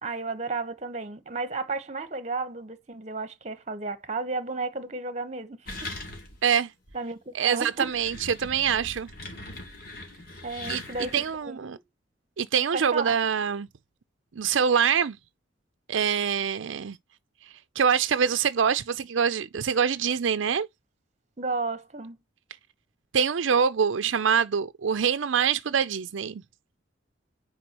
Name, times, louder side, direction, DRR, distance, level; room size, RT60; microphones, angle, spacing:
voice 1, 0.0-5.9 6.9-7.9 10.4-11.1 11.4-11.8 12.7-13.1 21.4-22.2, right 3 dB, 35° right, 1.1 m, -33 dB
sound 1, 5.7-6.5 6.9-7.0 7.6-11.4, left 2 dB, 50° left, 2.6 m, -40 dB
voice 2, 7.3-9.1 10.7-10.8 11.1-11.8 12.4-13.7 14.4-15.2 15.9-17.0 17.8-20.7 23.1-26.4, right 7 dB, 80° right, 0.5 m, -25 dB
9.5 x 4.7 x 3.0 m
head